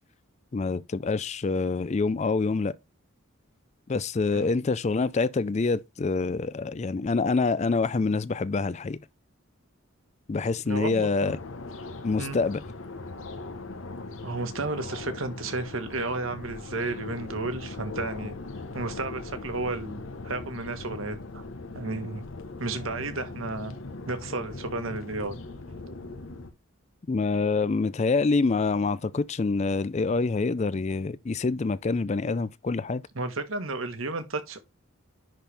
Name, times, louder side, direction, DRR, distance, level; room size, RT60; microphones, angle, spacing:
voice 1, 0.5-2.7 3.9-9.0 10.3-11.4 12.0-12.6 27.1-33.0, left 4 dB, 30° left, 0.4 m, -26 dB
voice 2, 10.7-11.3 12.2-12.4 14.2-18.3 18.7-21.5 21.7-22.2 22.6-23.7 24.0-25.4 33.1-34.6, right 2 dB, 70° right, 1.4 m, -32 dB
sound 1, 11.2-26.5, left 3 dB, 70° left, 1.1 m, -40 dB
10.5 x 4.3 x 3.4 m
head